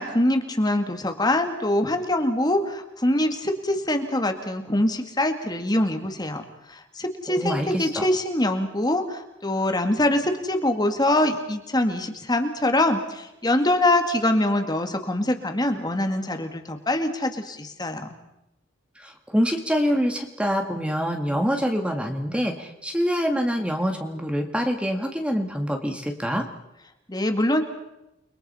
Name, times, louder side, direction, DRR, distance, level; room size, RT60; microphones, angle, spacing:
voice 1, 0.0-18.1 27.1-27.6, left 1 dB, 20° left, 6 dB, 2.1 m, -24 dB
voice 2, 7.3-8.0 19.0-26.5, equal, 5° right, 4 dB, 2.0 m, -25 dB
30.0 x 22.5 x 5.6 m, 0.88 s
head